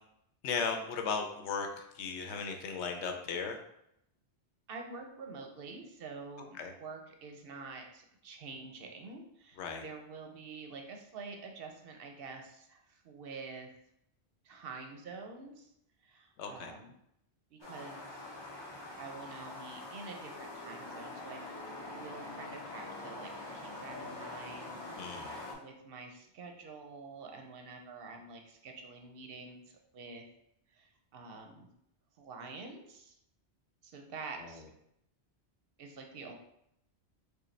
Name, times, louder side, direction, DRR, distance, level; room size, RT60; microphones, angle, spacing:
voice 1, 0.4-3.6 6.6-6.7 9.6-9.8 16.4-16.7 25.0-25.3 34.4-34.5, left 5 dB, 90° left, 4 dB, 0.9 m, -36 dB
voice 2, 4.7-13.7 14.4-15.7 16.0-16.9 17.5-18.2 19.0-21.4 22.0-24.8 25.5-29.6 29.9-30.2 30.7-31.7 32.2-33.1 33.8-34.6 35.8-36.3, right 4 dB, 65° right, 3 dB, 0.7 m, -47 dB
sound 1, 17.6-25.5, left 2 dB, 25° left, 0.9 m, -44 dB
4.7 x 2.2 x 3.2 m, 0.78 s
omnidirectional pair, 1.1 m